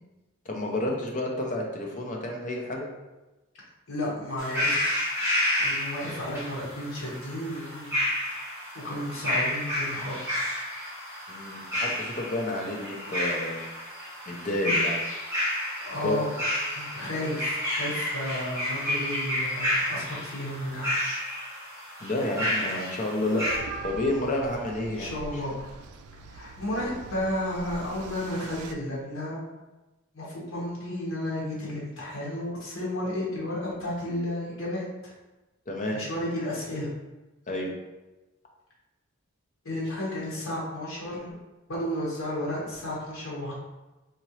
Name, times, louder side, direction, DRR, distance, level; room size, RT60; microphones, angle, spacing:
voice 1, 0.5-2.9 11.3-13.7 14.3-15.0 16.0-16.2 22.0-23.5 23.8-25.1 35.7-36.0 37.5-37.7, left 1 dB, 35° left, 0 dB, 0.7 m, -30 dB
voice 2, 3.9-5.1 5.6-8.0 8.3-8.4 8.7-10.6 15.8-16.3 16.7-21.2 24.9-25.5 26.3-29.5 30.1-34.8 35.9-36.9 39.6-41.3 41.7-43.5, left 1 dB, 65° left, -5 dB, 1.3 m, -33 dB
sound 1, 4.4-23.6, left 1 dB, 10° right, 1.2 m, -30 dB
sound 2, 23.5-28.7, right 4 dB, 85° right, 0.4 m, -42 dB
4.2 x 2.9 x 3.1 m, 1.1 s
head